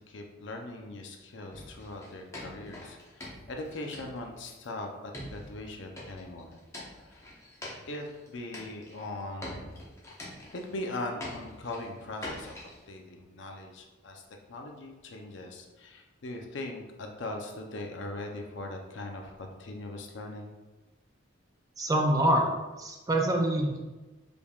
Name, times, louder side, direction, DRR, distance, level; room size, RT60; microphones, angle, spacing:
voice 1, 0.1-6.6 7.1-7.2 7.9-9.8 10.5-14.2 14.5-20.5, left 2 dB, 65° left, 2 dB, 0.6 m, -40 dB
sound 1, 1.5-4.7 5.1-8.3 8.5-9.1 9.4-10.9 11.2-12.8, left 1 dB, 15° left, 0.8 m, -44 dB
voice 2, 21.8-23.8, right 1 dB, 15° right, 1 dB, 0.4 m, -26 dB
5.1 x 3.4 x 2.3 m, 1.2 s
head